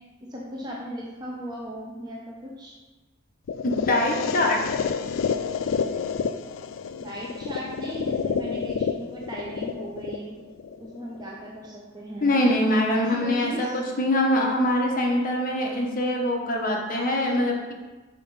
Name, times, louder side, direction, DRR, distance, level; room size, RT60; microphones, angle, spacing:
voice 1, 0.3-2.7 7.0-10.3 10.8-12.4 12.9-13.8, equal, 20° right, -4 dB, 0.9 m, -37 dB
sound 1, 3.5-11.5, left 6 dB, 70° left, 0.4 m, -29 dB
voice 2, 3.6-4.6 12.2-17.7, left 1 dB, 45° left, 0 dB, 1.1 m, -23 dB
5.8 x 5.0 x 5.5 m, 1.2 s
head